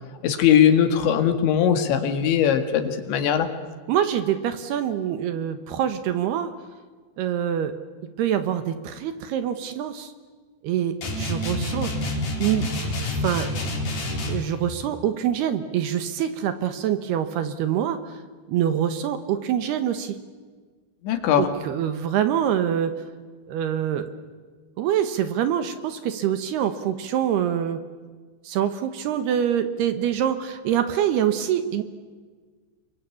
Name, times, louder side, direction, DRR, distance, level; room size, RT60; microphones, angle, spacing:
voice 1, 0.2-3.5 21.0-21.5, left 9 dB, 75° left, 7 dB, 4.1 m, -20 dB
voice 2, 3.9-6.5 7.2-7.7 8.2-10.1 10.6-12.7 13.2-13.5 14.3-18.2 18.5-20.2 21.4-23.0 23.5-24.1 24.8-27.8 28.4-31.8, right 10 dB, 70° right, 9 dB, 2.9 m, -25 dB
sound 1, 11.0-14.5, left 1 dB, 45° left, 5.5 m, -28 dB
29.5 x 23.5 x 8.5 m, 1.5 s
omnidirectional pair, 5.4 m